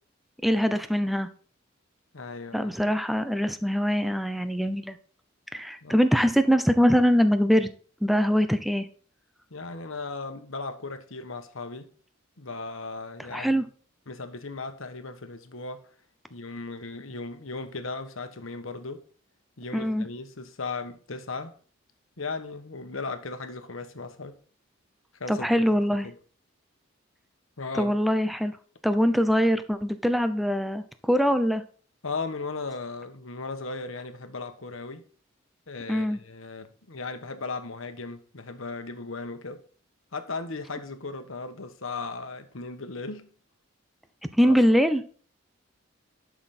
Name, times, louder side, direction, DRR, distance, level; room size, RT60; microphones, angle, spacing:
voice 1, 0.4-1.3 2.5-5.0 5.5-7.7 8.0-8.9 13.3-13.6 19.7-20.1 25.3-26.1 27.7-28.5 28.8-31.6 35.9-36.2 44.4-45.0, equal, ahead, 0.6 m, -23 dB
voice 2, 2.1-2.7 5.8-6.0 9.5-11.9 12.4-13.6 14.1-15.9 16.3-19.0 19.6-21.5 22.2-24.4 25.1-25.6 26.0-26.1 27.6-28.0 32.0-35.0 35.7-39.6 40.1-43.3 44.4-44.6, left 3 dB, 75° left, 1.3 m, -37 dB
11.0 x 6.3 x 4.3 m
head